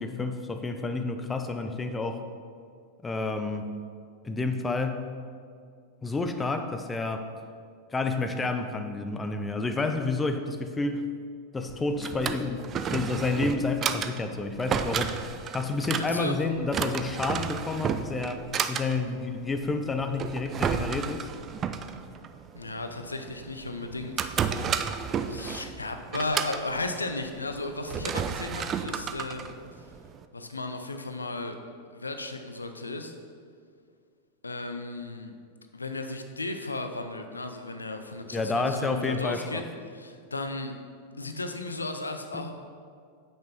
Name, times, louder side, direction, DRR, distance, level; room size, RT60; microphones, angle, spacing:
voice 1, 0.0-2.2 3.0-3.7 4.2-5.1 6.0-7.3 7.9-11.0 11.5-15.3 15.5-21.3 38.3-39.6 42.3-42.5, left 3 dB, 15° left, 7 dB, 0.6 m, -30 dB
Drawer open or close, 11.7-30.2, right 7 dB, 25° right, 0.5 m, -33 dB
voice 2, 16.0-16.4 22.5-24.3 25.3-29.9 30.3-31.5 31.9-33.1 34.4-35.3 35.7-40.7 41.2-42.5, left 2 dB, 80° left, 6 dB, 0.7 m, -35 dB
8.5 x 6.1 x 5.5 m, 2.2 s
figure-of-eight pair, 90°, 0 cm